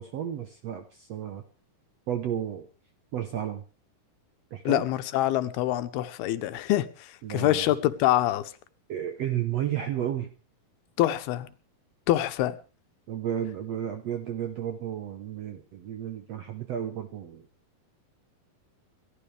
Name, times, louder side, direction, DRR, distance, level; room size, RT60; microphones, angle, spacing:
voice 1, 0.0-1.4 2.1-2.7 3.1-3.6 4.5-4.8 7.2-7.7 8.9-10.3 13.1-17.4, right 10 dB, 70° right, 1.5 m, -32 dB
voice 2, 4.7-8.5 11.0-11.5 12.1-12.6, left 14 dB, 90° left, 2.9 m, -25 dB
28.5 x 12.0 x 3.4 m
omnidirectional pair, 4.4 m